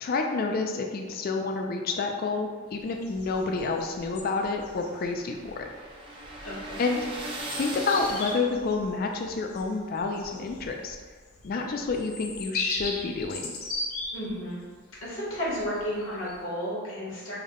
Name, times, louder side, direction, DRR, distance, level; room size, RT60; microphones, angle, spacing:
voice 1, 0.0-5.7 6.8-7.0 7.5-11.0 11.4-13.5, left 4 dB, 45° left, 3 dB, 0.3 m, -29 dB
sound 1, 2.7-16.4, left 2 dB, 90° left, 0.6 m, -39 dB
sound 2, 3.3-8.8, right 1 dB, 25° right, 0.4 m, -39 dB
voice 2, 6.4-6.8 14.1-14.6 15.0-17.3, equal, 70° left, -6 dB, 1.1 m, -32 dB
3.4 x 2.1 x 3.6 m, 1.5 s
head